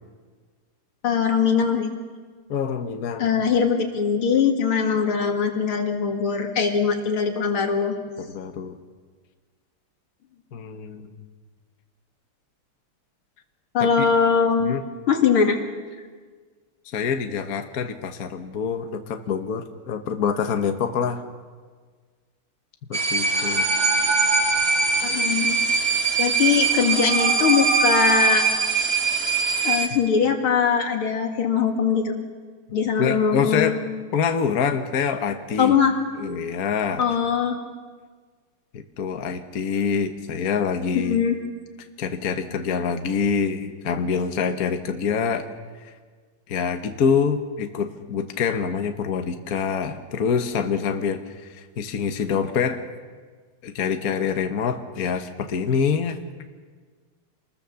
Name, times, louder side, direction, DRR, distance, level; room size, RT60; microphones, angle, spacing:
voice 1, 1.0-1.9 3.2-7.9 13.7-14.7 15.1-15.6 25.0-25.6 26.2-28.4 29.6-32.1 32.7-33.8 35.6-35.9 37.0-37.6 40.9-41.4, left 6 dB, 75° left, 3 dB, 3.0 m, -21 dB
voice 2, 2.5-3.3 8.3-8.8 10.5-11.2 13.8-14.1 14.6-14.8 16.9-21.2 22.9-23.7 32.7-33.8 34.1-35.8 36.2-37.0 38.7-41.2 42.0-45.5 46.5-51.2 51.5-52.8 53.6-56.2, left 6 dB, 50° left, 6 dB, 1.5 m, -25 dB
sound 1, 22.9-29.9, right 4 dB, 30° right, 1.8 m, -21 dB
27.0 x 20.5 x 7.0 m, 1.5 s
omnidirectional pair, 2.4 m